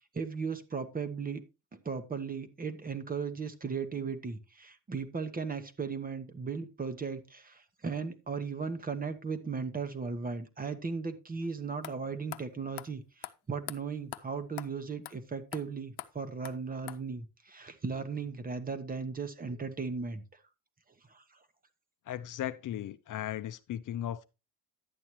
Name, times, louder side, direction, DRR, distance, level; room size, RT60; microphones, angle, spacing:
voice 1, 0.1-1.4 1.8-20.2 21.1-21.2, right 5 dB, 20° right, 0.9 m, -37 dB
sound 1, 11.4-11.5 11.8-11.9 12.3-12.4 12.8-12.9 13.2-13.3 13.7-13.8 14.1-14.2 14.6-14.7 15.0-15.2 15.5-15.6 16.0-16.1 16.4-16.5 16.9-17.0, left 15 dB, 85° left, 0.8 m, -41 dB
voice 2, 22.1-24.2, left 11 dB, 50° left, 0.6 m, -36 dB
11.0 x 8.7 x 3.0 m
cardioid pair, 140°, 39 cm